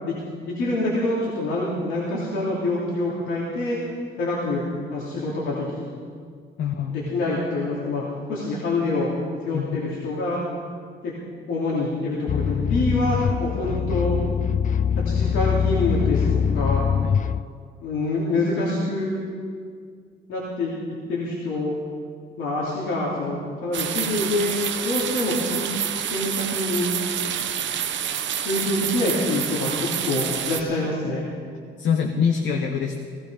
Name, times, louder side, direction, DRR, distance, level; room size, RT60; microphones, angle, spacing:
voice 1, 0.0-3.8 4.2-4.6 4.9-5.9 6.9-8.0 8.3-9.1 9.4-10.4 11.0-11.1 11.5-14.2 15.0-16.8 17.8-19.2 20.3-20.8 21.1-21.7 22.4-24.5 24.8-25.7 26.0-26.9 28.4-31.3, left 2 dB, 90° left, -6 dB, 2.9 m, -26 dB
voice 2, 6.6-7.0 9.5-9.8 17.0-17.2 31.8-33.0, left 7 dB, 70° left, 2 dB, 1.2 m, -24 dB
sound 1, 12.3-17.4, left 7 dB, 40° left, 0.4 m, -23 dB
sound 2, 23.7-30.6, right 9 dB, 70° right, 1.0 m, -28 dB
17.0 x 15.0 x 5.1 m, 2.1 s
cardioid pair, 90°, 20 cm